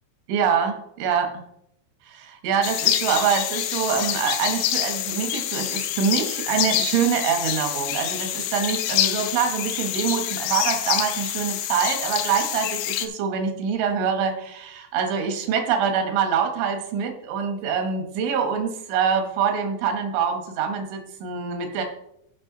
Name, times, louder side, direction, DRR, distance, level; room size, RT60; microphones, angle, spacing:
voice 1, 0.3-1.4 2.1-21.8, right 7 dB, 90° right, 6 dB, 3.7 m, -25 dB
sound 1, 2.6-13.1, left 12 dB, 85° left, 2.8 m, -26 dB
14.0 x 5.3 x 3.9 m, 0.76 s
omnidirectional pair, 5.2 m